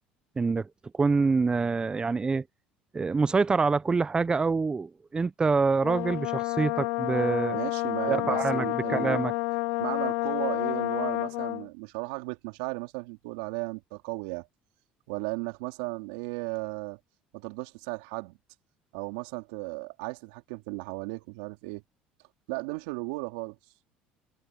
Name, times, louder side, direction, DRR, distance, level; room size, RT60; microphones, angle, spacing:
voice 1, 0.4-0.7 0.9-2.4 2.9-7.6 8.1-9.3, right 4 dB, 25° right, 0.7 m, -26 dB
Brass instrument, 5.8-11.7, left 27 dB, 75° left, 0.4 m, -29 dB
voice 2, 7.5-9.2 9.8-14.5 15.1-17.0 17.3-18.4 18.9-21.8 22.5-23.6, right 26 dB, 80° right, 3.7 m, -35 dB
supercardioid pair, 80°, 4 cm